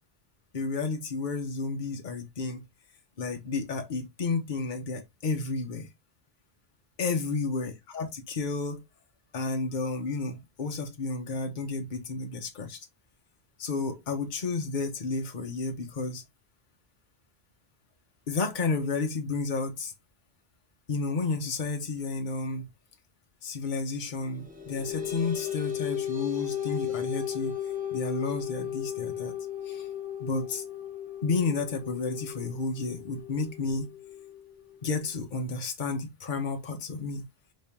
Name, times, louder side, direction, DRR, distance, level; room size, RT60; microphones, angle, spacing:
voice 1, 0.5-2.6 3.2-5.9 7.0-8.8 9.3-12.8 13.6-16.2 18.3-19.9 20.9-22.7 23.4-27.5 27.9-29.3 29.7-29.9 30.2-30.6 31.2-33.9 34.8-37.2, left 3 dB, 50° left, 1.1 m, -31 dB
sound 1, 24.3-35.2, left 10 dB, 10° right, 1.1 m, -36 dB
4.3 x 3.3 x 3.5 m
omnidirectional pair, 1.1 m